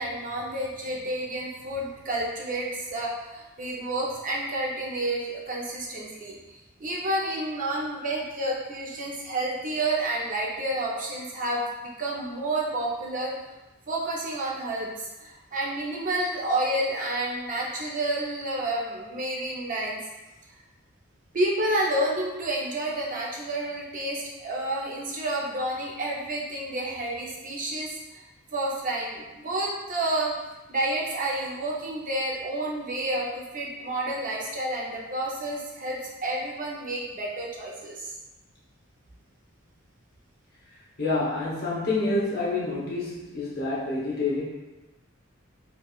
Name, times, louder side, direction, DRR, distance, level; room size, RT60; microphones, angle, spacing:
voice 1, 0.0-13.3 13.9-20.0 21.3-28.3 28.5-30.3 30.7-38.1, right 1 dB, 40° right, -4 dB, 0.6 m, -30 dB
voice 2, 41.0-44.4, left 2 dB, 50° left, -5 dB, 0.8 m, -27 dB
3.5 x 2.3 x 2.3 m, 1.1 s
head